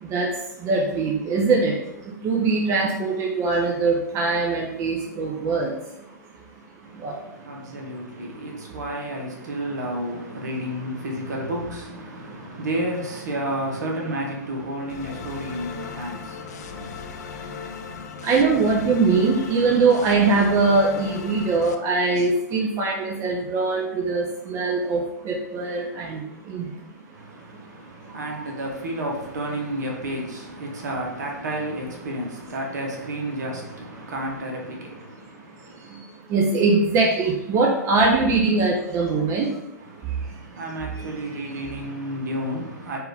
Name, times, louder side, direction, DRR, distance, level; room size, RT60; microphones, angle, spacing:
voice 1, 0.0-6.2 6.8-7.3 12.3-12.4 16.3-16.4 16.7-17.6 18.2-26.7 28.0-28.5 34.0-34.1 35.7-40.6 41.0-41.1, right 3 dB, 30° right, 0.7 m, -23 dB
voice 2, 6.8-16.9 27.1-36.0 39.8-43.0, right 1 dB, 70° right, 1.2 m, -31 dB
sound 1, 14.9-21.7, left 6 dB, 65° left, 0.4 m, -37 dB
4.5 x 2.7 x 3.4 m
hypercardioid pair, 115°, 10 cm